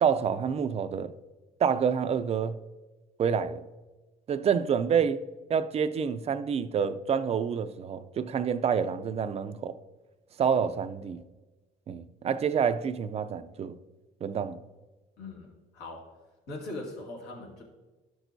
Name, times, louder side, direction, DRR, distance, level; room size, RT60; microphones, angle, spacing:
voice 1, 0.0-1.1 1.6-2.6 3.2-3.7 4.3-5.2 5.5-9.8 10.4-11.2 11.9-13.8 14.2-14.6, right 7 dB, 40° right, 0.5 m, -28 dB
voice 2, 15.2-16.2 16.5-17.6, left 2 dB, 80° left, 2.2 m, -41 dB
12.5 x 6.2 x 2.7 m
cardioid pair, 110°, 17 cm